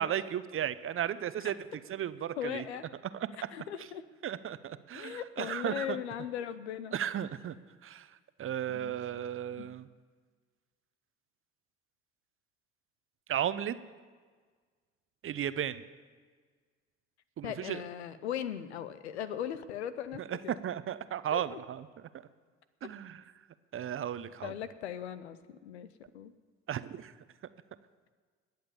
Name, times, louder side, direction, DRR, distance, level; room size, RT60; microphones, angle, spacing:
voice 1, 0.0-1.5 1.9-2.6 3.2-3.3 4.2-6.0 6.9-7.5 7.8-8.1 8.4-9.8 13.3-13.8 15.2-15.8 17.4-17.8 20.3-20.4 20.6-21.9 22.8-23.2 23.7-24.5 26.7-27.1, right 10 dB, 40° right, 14 dB, 0.8 m, -34 dB
voice 2, 2.4-2.8 3.5-4.0 4.9-6.9 8.7-9.0 9.6-9.7 17.4-20.6 21.3-21.6 24.4-25.9 26.1-26.3, left 9 dB, 85° left, 13 dB, 0.7 m, -38 dB
20.5 x 7.8 x 7.0 m, 1.5 s
hypercardioid pair, 55°, 32 cm